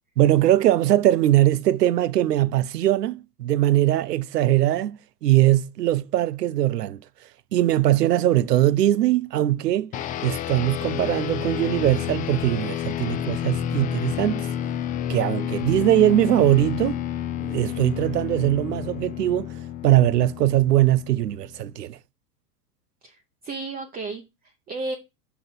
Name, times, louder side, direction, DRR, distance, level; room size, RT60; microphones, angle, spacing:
voice 1, 0.2-7.0 7.5-9.9 10.2-14.5 15.1-17.0 17.4-19.5 19.8-22.0, right 14 dB, 85° right, 0.6 m, -21 dB
sound 1, 9.9-21.6, left 10 dB, 20° left, 0.4 m, -30 dB
voice 2, 23.0-25.0, right 3 dB, 20° right, 0.7 m, -34 dB
5.7 x 3.8 x 6.0 m
hypercardioid pair, 100°, 47 cm